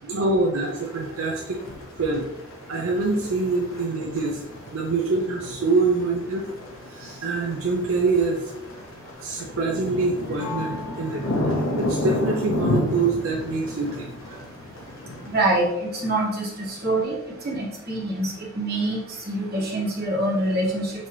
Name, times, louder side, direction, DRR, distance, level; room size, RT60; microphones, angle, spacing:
voice 1, 0.0-1.6 2.0-2.3 2.7-4.4 4.7-6.5 6.9-8.5 9.2-14.1, right 3 dB, 80° right, -1 dB, 0.5 m, -25 dB
sound 1, 0.5-15.4, left 1 dB, 70° left, 0.7 m, -32 dB
voice 2, 15.2-17.2 17.4-19.0 19.3-20.9, right 1 dB, 50° right, -5 dB, 1.5 m, -25 dB
5.5 x 2.9 x 3.0 m, 0.94 s
head